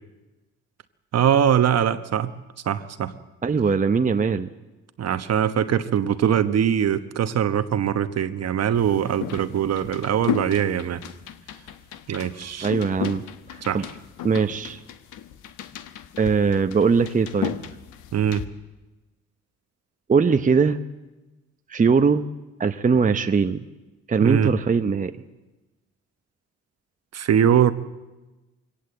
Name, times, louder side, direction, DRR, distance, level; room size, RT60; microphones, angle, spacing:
voice 1, 1.1-2.3 2.6-3.1 5.0-11.0 12.1-12.7 13.7-13.8 18.1-18.4 24.2-24.5 27.1-27.7, right 9 dB, 55° right, 11 dB, 1.1 m, -22 dB
voice 2, 3.4-4.5 12.6-13.2 13.5-13.9 14.2-14.8 16.2-17.5 20.1-20.8 21.7-22.3 22.6-23.7 24.1-25.1, right 5 dB, 25° right, 8 dB, 0.8 m, -21 dB
sound 1, 8.7-18.5, left 11 dB, 85° left, 1.2 m, -35 dB
22.5 x 17.5 x 7.8 m, 1.1 s
cardioid pair, 90°, 30 cm